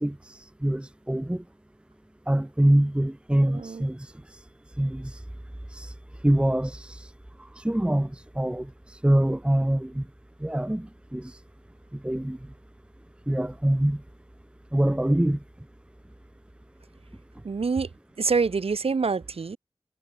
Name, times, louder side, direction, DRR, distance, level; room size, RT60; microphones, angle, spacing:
voice 1, 0.0-0.3 0.6-1.4 2.3-4.1 4.8-5.1 5.7-5.9 6.2-7.1 7.6-8.7 9.0-10.0 10.4-11.3 11.9-12.4 13.3-14.0 14.7-15.4, right 1 dB, 10° right, 0.9 m, -24 dB
voice 2, 17.4-17.9 18.2-19.6, right 4 dB, 80° right, 2.5 m, -26 dB
cardioid pair, 50°, 10 cm